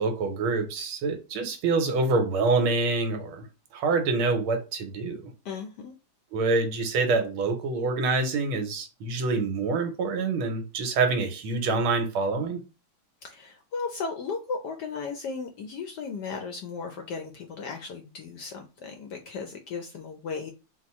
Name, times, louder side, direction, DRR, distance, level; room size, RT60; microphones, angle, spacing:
voice 1, 0.0-3.4 3.7-5.2 6.3-12.6, right 3 dB, 80° right, 1.7 m, -26 dB
voice 2, 5.4-5.9 13.2-20.5, left 5 dB, 70° left, 1.0 m, -36 dB
4.3 x 2.3 x 4.2 m
omnidirectional pair, 2.3 m